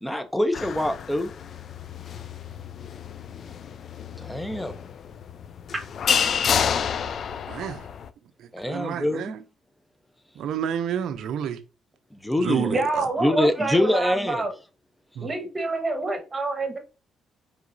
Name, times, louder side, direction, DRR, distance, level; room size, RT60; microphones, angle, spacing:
voice 1, 0.0-1.3 4.2-4.7 8.5-9.3 12.1-12.7 13.2-14.4, left 1 dB, 5° left, 0.6 m, -24 dB
sound 1, 0.5-8.1, left 7 dB, 60° left, 0.3 m, -29 dB
voice 2, 7.5-7.8 8.4-9.4 10.4-11.6 12.4-13.1 15.2-15.3, right 9 dB, 75° right, 0.4 m, -29 dB
voice 3, 12.7-14.5 15.2-16.8, right 2 dB, 25° right, 1.3 m, -27 dB
4.7 x 3.2 x 2.6 m
cardioid pair, 90°, 0 cm